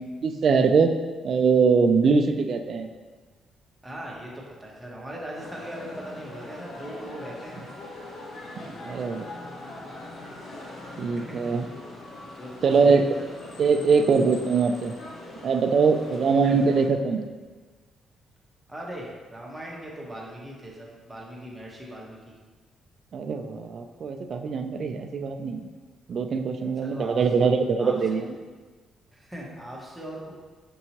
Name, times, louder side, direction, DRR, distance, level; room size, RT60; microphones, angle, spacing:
voice 1, 0.2-0.9 1.2-2.9 8.7-9.3 11.0-11.6 12.6-13.1 13.6-14.9 15.4-17.2 23.1-25.7 26.1-28.3, right 5 dB, 55° right, 6 dB, 0.3 m, -22 dB
voice 2, 3.8-7.6 11.1-11.2 11.6-11.7 12.3-13.1 16.2-16.3 18.7-22.4 26.8-27.2 27.8-28.0 29.1-30.3, right 1 dB, 10° right, -4 dB, 0.9 m, -39 dB
sound 1, 5.3-16.9, left 2 dB, 65° left, 0.8 m, -42 dB
5.3 x 2.7 x 2.9 m, 1.4 s
cardioid pair, 90°, 0 cm